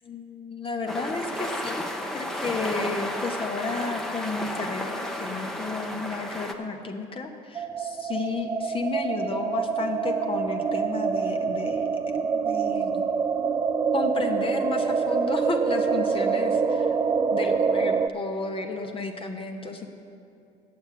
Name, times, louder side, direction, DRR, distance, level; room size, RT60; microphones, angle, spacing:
voice 1, 0.0-1.9 2.1-11.9 12.3-13.0 13.9-17.0 17.3-19.9, left 3 dB, 30° left, 3 dB, 1.0 m, -32 dB
sound 1, 0.9-6.5, left 1 dB, ahead, 1.0 m, -32 dB
sound 2, 7.5-18.1, right 5 dB, 20° right, 0.4 m, -26 dB
8.7 x 6.9 x 8.5 m, 2.5 s
hypercardioid pair, 70°, 18 cm